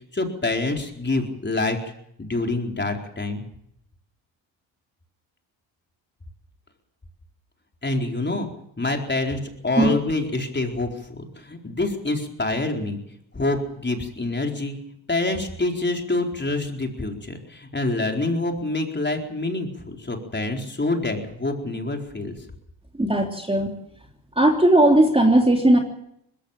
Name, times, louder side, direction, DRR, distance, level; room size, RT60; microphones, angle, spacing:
voice 1, 0.1-1.9 2.2-3.4 7.8-8.5 8.8-13.0 13.3-14.8 15.1-22.3, left 2 dB, 20° left, 3 dB, 4.4 m, -26 dB
voice 2, 23.0-23.7 24.4-25.8, right 1 dB, 10° right, 2 dB, 3.1 m, -17 dB
20.5 x 15.5 x 9.0 m, 0.76 s
supercardioid pair, 60°, 49 cm